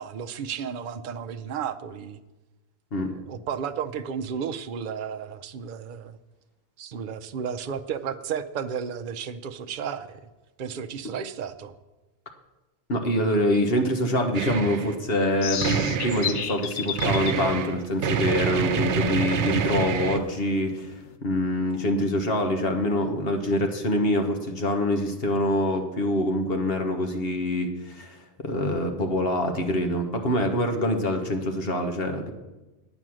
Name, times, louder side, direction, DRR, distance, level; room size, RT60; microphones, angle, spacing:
voice 1, 0.0-2.2 3.0-6.2 6.8-10.3 10.6-11.7, right 7 dB, 55° right, 7 dB, 0.7 m, -33 dB
voice 2, 12.9-20.9 21.2-32.3, left 1 dB, 60° left, 4 dB, 1.4 m, -25 dB
sound 1, 14.3-15.0 15.6-16.5 17.0-20.2, right 7 dB, 80° right, 1.0 m, -27 dB
sound 2, 15.3-21.2, left 9 dB, 80° left, 1.0 m, -35 dB
9.4 x 9.0 x 6.2 m, 1.1 s
omnidirectional pair, 1.2 m